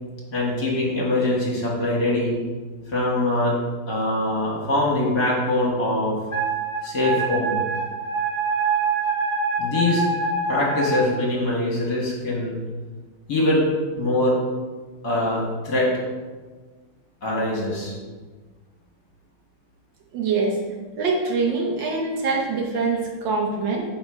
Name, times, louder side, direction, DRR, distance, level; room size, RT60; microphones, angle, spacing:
voice 1, 0.3-2.4 2.9-3.6 3.9-6.2 6.8-7.6 9.6-10.1 10.5-12.6 13.3-13.7 14.0-14.4 15.0-15.9 17.2-18.0, left 1 dB, 50° left, -4 dB, 2.1 m, -23 dB
Wind instrument woodwind instrument, 6.3-11.0, right 4 dB, 20° left, 1.6 m, -25 dB
voice 2, 20.1-20.6 21.0-23.8, right 4 dB, 65° right, 0 dB, 1.5 m, -24 dB
8.4 x 4.3 x 4.8 m, 1.4 s
omnidirectional pair, 2.4 m